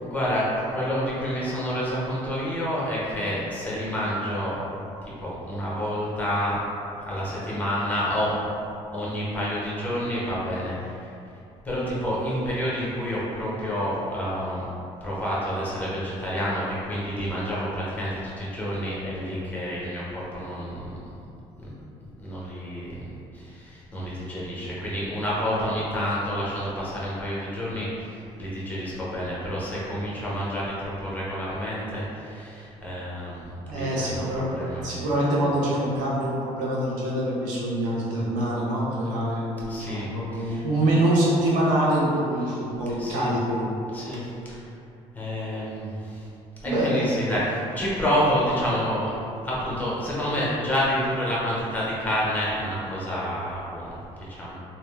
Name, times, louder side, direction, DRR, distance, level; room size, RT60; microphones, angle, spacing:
voice 1, 0.0-4.6 5.2-6.6 7.0-8.3 8.9-10.9 11.6-14.7 15.0-20.9 21.6-21.7 22.2-23.0 23.3-34.8 39.7-40.6 43.0-43.3 43.9-44.6 45.1-46.3 46.6-54.0 54.3-54.6, equal, 15° left, -7 dB, 1.1 m, -29 dB
voice 2, 33.7-34.5 34.8-43.6 46.7-47.0, right 1 dB, 90° right, -5 dB, 0.9 m, -25 dB
3.2 x 2.7 x 3.3 m, 2.7 s
cardioid pair, 100°, 13 cm